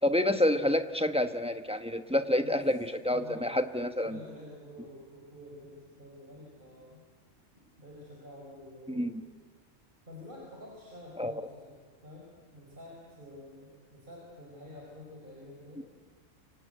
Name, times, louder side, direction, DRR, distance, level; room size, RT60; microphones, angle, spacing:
voice 1, 0.0-4.2 8.9-9.1 11.2-11.5 15.8-15.9, left 1 dB, 5° right, 7 dB, 1.0 m, -28 dB
voice 2, 3.1-3.6 4.0-7.0 7.8-9.1 10.1-11.7 12.0-12.3 12.5-15.8, left 1 dB, 40° right, -3 dB, 5.4 m, -48 dB
29.5 x 25.5 x 8.0 m, 1.5 s
omnidirectional pair, 1.4 m